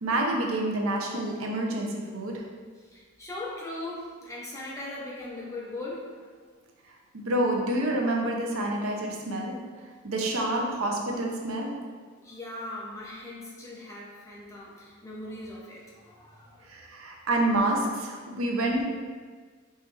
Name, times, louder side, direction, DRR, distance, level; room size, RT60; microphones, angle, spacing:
voice 1, 0.0-2.4 7.1-9.6 10.0-11.7 16.7-18.8, right 1 dB, 70° right, 0 dB, 0.6 m, -28 dB
voice 2, 2.8-6.3 10.5-10.6 12.2-16.8, left 2 dB, 15° left, -5 dB, 0.7 m, -40 dB
4.5 x 3.2 x 3.3 m, 1.5 s
head